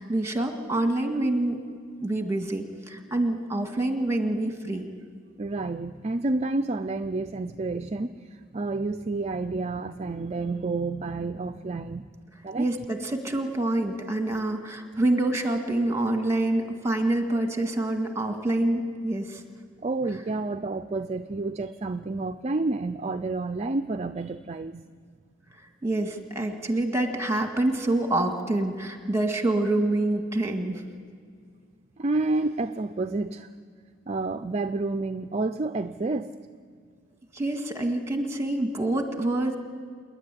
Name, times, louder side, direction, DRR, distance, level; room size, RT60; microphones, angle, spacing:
voice 1, 0.0-1.6 2.0-4.9 12.6-19.4 25.8-30.8 37.3-39.6, right 1 dB, 15° right, 4 dB, 1.9 m, -26 dB
voice 2, 5.4-12.1 12.4-12.7 19.8-24.9 32.0-33.5 34.1-36.3, right 3 dB, 35° right, 9 dB, 0.5 m, -29 dB
27.5 x 11.0 x 9.8 m, 2.1 s
head